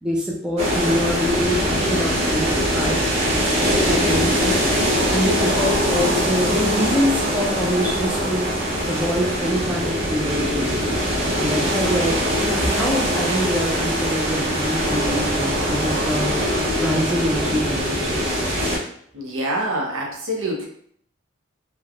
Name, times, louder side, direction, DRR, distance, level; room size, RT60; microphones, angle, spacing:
voice 1, 0.0-3.0 3.3-4.6 5.1-8.5 8.9-10.7 11.3-16.4 16.7-18.4, equal, 5° right, -4 dB, 0.4 m, -25 dB
sound 1, 0.6-18.8, equal, 30° right, 0.7 m, -22 dB
voice 2, 19.1-20.7, right 1 dB, 75° right, -1 dB, 0.7 m, -26 dB
3.1 x 2.1 x 2.4 m, 0.63 s
head